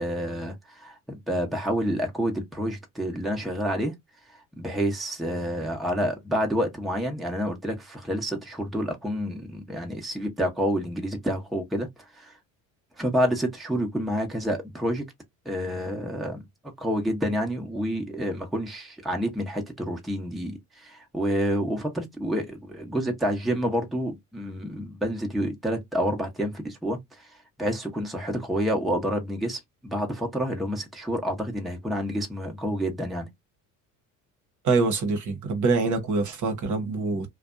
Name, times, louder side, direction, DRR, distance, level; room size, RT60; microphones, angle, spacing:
voice 1, 0.0-3.9 4.5-12.4 13.0-15.0 15.4-16.4 16.8-33.3, equal, ahead, 0.8 m, -28 dB
voice 2, 34.6-37.3, right 3 dB, 45° right, 0.9 m, -25 dB
2.5 x 2.2 x 2.5 m
hypercardioid pair, 75°, 42 cm